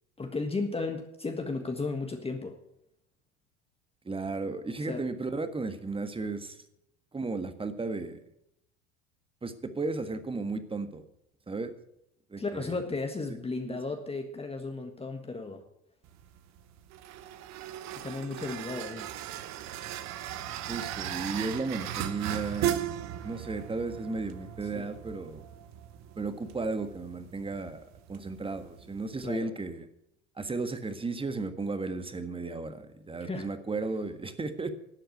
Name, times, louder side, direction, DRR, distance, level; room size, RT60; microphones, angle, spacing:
voice 1, 0.2-2.6 4.8-5.1 12.4-15.6 18.0-19.1 24.7-24.9 29.2-29.5 33.2-33.5, left 3 dB, 15° left, 5 dB, 1.5 m, -34 dB
voice 2, 4.0-6.6 7.1-8.2 9.4-11.0 11.5-11.7 12.3-12.8 13.3-13.4 13.6-13.8 20.7-22.9 23.2-25.4 26.2-27.8 28.1-29.9 30.4-34.7, right 3 dB, 15° right, 10 dB, 1.6 m, -34 dB
sound 1, 16.0-29.4, right 11 dB, 50° right, 1.2 m, -38 dB
12.0 x 7.7 x 9.2 m, 0.77 s
hypercardioid pair, 80°, 34 cm